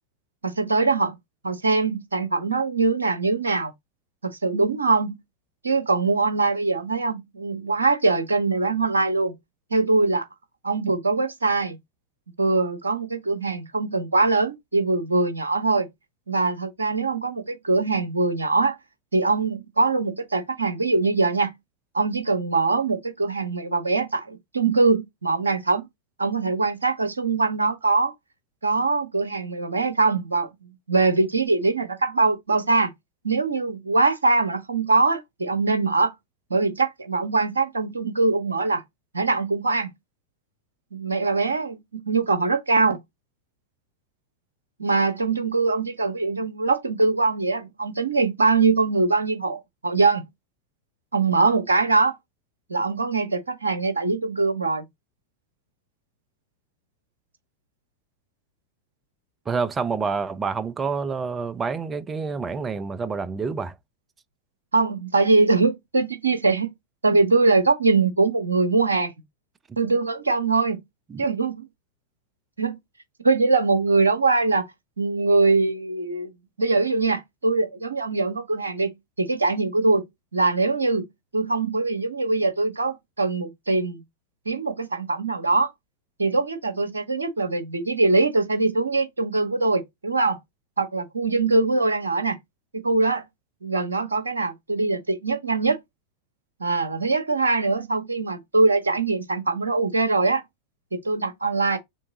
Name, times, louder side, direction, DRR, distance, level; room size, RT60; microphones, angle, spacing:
voice 1, 0.4-1.2 1.4-3.7 4.2-5.2 5.6-9.3 9.7-10.3 10.6-11.8 12.4-15.9 16.3-18.8 19.1-21.5 21.9-25.9 26.2-28.1 28.6-30.5 30.9-32.9 33.2-36.1 36.5-38.8 39.1-39.9 40.9-43.0 44.8-50.2 51.1-52.2 52.7-54.9 64.7-66.7 67.0-69.1 69.8-70.8 71.2-71.7 72.6-72.8 73.2-74.7 75.0-76.3 76.6-80.0 80.3-81.1 81.3-84.0 84.5-85.7 86.2-90.4 90.8-92.4 92.7-93.2 93.6-95.8 96.6-100.4 100.9-101.8, right 3 dB, 75° right, 0.7 m, -22 dB
voice 2, 59.5-63.8 69.7-69.8 71.1-71.2, right 5 dB, 20° right, 0.4 m, -28 dB
3.6 x 3.3 x 4.0 m
figure-of-eight pair, 90°, 0 cm